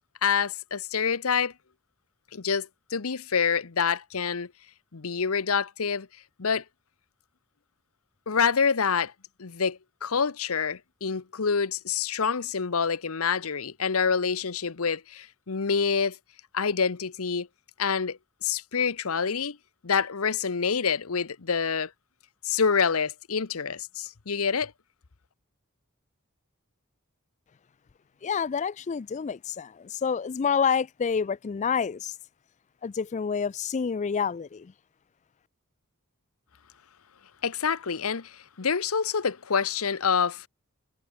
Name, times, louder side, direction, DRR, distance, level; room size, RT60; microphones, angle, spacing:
voice 1, 0.2-1.5 2.3-4.5 4.9-6.1 6.4-6.6 8.3-9.1 9.4-16.2 16.5-17.5 17.8-19.6 19.8-21.9 22.4-24.7 37.4-40.5, left 6 dB, 80° left, 0.9 m, -27 dB
voice 2, 28.2-32.1 32.8-34.7, left 6 dB, 35° left, 0.3 m, -28 dB
head